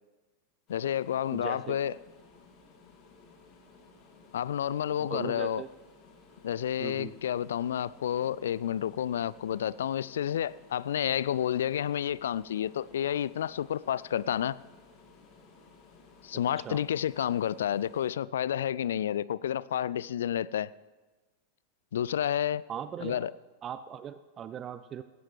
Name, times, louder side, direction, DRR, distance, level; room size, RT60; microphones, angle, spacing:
voice 1, 0.7-1.9 4.3-5.6 6.4-14.6 16.2-20.7 21.9-22.6 23.0-23.3, left 10 dB, 60° left, 0.3 m, -30 dB
sound 1, 0.7-18.1, left 4 dB, 35° left, 2.1 m, -57 dB
voice 2, 1.3-1.8 5.0-5.7 6.8-7.2 16.3-16.8 22.7-23.3 23.6-25.0, right 9 dB, 25° right, 0.5 m, -39 dB
17.5 x 16.0 x 3.2 m
figure-of-eight pair, 90°, 0 cm